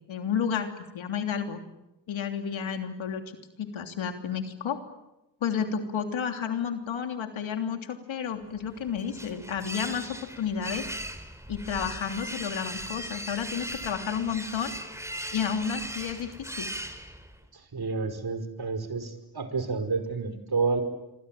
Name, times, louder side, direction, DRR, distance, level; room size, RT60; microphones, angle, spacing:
voice 1, 0.1-0.7 0.9-1.6 2.1-3.2 3.6-4.8 5.4-10.9 11.5-14.8 15.3-16.7, left 7 dB, 80° left, 6 dB, 3.2 m, -31 dB
sound 1, 8.6-17.5, right 1 dB, 5° right, 4.1 m, -38 dB
voice 2, 17.5-20.8, right 4 dB, 55° right, 9 dB, 5.3 m, -30 dB
27.0 x 23.5 x 9.1 m, 0.93 s
cardioid pair, 55°, 46 cm